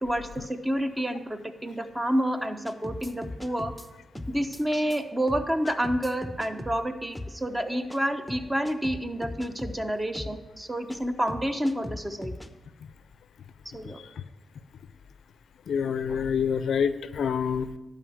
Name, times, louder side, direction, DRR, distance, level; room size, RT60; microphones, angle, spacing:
voice 1, 0.0-3.7 4.3-12.3 13.7-14.0, equal, 20° right, 8 dB, 0.9 m, -29 dB
sound 1, 2.6-3.9 4.1-5.0 5.3-6.8 7.1-7.3 7.9-8.0 8.3-9.8 10.1-10.4 10.9-11.0 11.3-12.5, left 1 dB, 5° left, 0.8 m, -38 dB
voice 2, 15.7-17.8, left 7 dB, 75° left, 13 dB, 0.4 m, -27 dB
11.5 x 5.0 x 5.9 m, 1.1 s
supercardioid pair, 50°, 0 cm